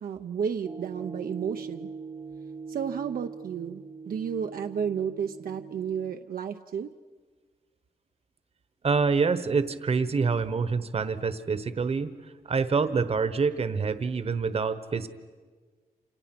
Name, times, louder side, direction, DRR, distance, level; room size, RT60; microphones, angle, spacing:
voice 1, 0.0-1.9 2.7-6.9, right 7 dB, 70° right, 6 dB, 0.7 m, -32 dB
sound 1, 0.6-6.2, right 5 dB, 25° right, 0.8 m, -41 dB
voice 2, 8.8-12.1 12.4-15.1, right 5 dB, 40° right, 12 dB, 1.1 m, -26 dB
28.5 x 27.5 x 6.0 m, 1.5 s
wide cardioid pair, 155°, 16 cm